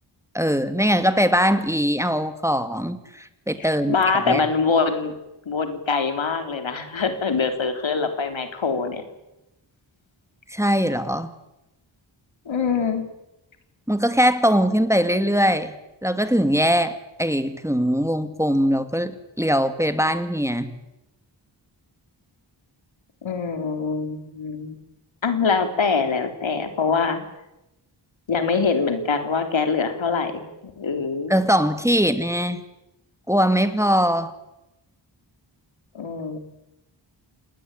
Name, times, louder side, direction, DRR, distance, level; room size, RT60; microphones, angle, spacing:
voice 1, 0.3-4.0 4.2-4.4 10.5-11.3 13.9-15.8 16.0-20.7 31.3-32.6 33.3-34.3, equal, 5° right, 10 dB, 2.2 m, -21 dB
voice 2, 3.6-5.1 5.5-9.0 12.5-13.0 23.2-24.8 25.2-27.3 28.3-30.5 30.8-31.3 35.9-36.4, left 5 dB, 80° left, 7 dB, 3.7 m, -24 dB
28.0 x 19.5 x 9.1 m, 0.93 s
wide cardioid pair, 80°, 46 cm